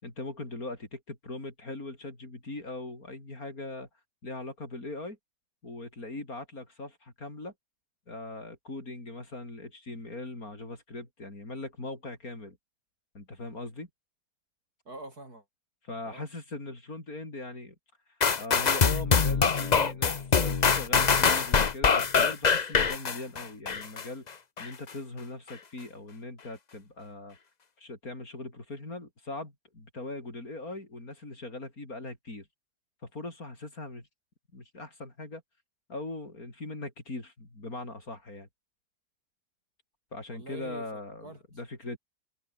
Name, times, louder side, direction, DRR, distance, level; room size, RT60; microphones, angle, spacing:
voice 1, 0.0-3.9 4.2-5.2 5.6-7.5 8.1-12.6 13.1-13.9 15.8-17.8 18.3-24.3 24.6-27.4 27.8-32.5 33.0-34.0 34.5-35.4 35.9-38.5 40.1-42.0, left 2 dB, 60° left, 6.1 m, -40 dB
voice 2, 14.8-15.4 16.0-16.3 40.3-40.9 41.2-41.4, right 2 dB, 65° right, 8.4 m, -44 dB
sound 1, 18.2-24.0 24.6-24.7, left 5 dB, 35° left, 0.8 m, -24 dB
omnidirectional pair, 1.7 m